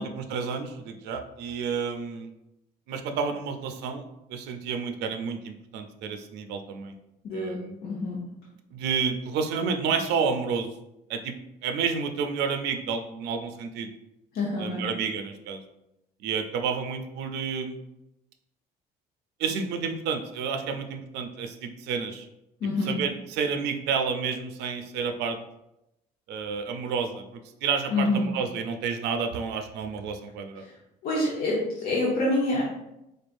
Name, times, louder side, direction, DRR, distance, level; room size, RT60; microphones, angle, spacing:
voice 1, 0.0-2.3 2.9-4.0 4.3-6.9 7.3-7.8 8.7-10.7 11.1-11.3 11.6-13.9 14.6-15.6 16.2-17.8 19.4-22.3 22.9-25.4 26.3-30.6, right 6 dB, 85° right, 6 dB, 0.5 m, -30 dB
voice 2, 7.2-8.2 14.3-14.8 22.6-23.0 27.9-28.3 30.6-30.7 31.0-32.6, left 2 dB, 65° left, -5 dB, 0.9 m, -27 dB
4.0 x 3.4 x 2.5 m, 0.87 s
cardioid pair, 110°, 17 cm